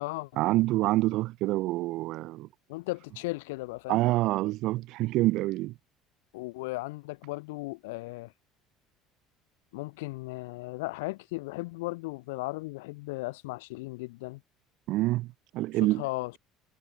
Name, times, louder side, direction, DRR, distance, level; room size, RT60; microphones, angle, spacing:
voice 1, 0.4-2.5 3.9-5.7 14.9-16.0, right 18 dB, 65° right, 1.0 m, -27 dB
voice 2, 2.7-4.0 6.3-8.3 9.7-14.4 16.0-16.4, left 23 dB, 90° left, 1.7 m, -36 dB
supercardioid pair, 100°, 0 cm